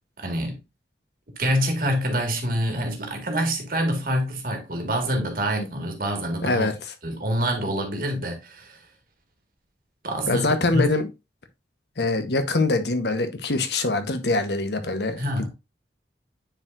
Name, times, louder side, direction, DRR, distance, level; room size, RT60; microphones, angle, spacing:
voice 1, 0.2-0.6 1.4-6.7 7.0-8.8 10.0-10.9 15.2-15.5, equal, 50° right, 1.9 m, -26 dB
voice 2, 6.4-6.9 10.3-11.1 12.0-15.2, left 2 dB, 70° left, 1.1 m, -24 dB
9.5 x 4.6 x 2.6 m
head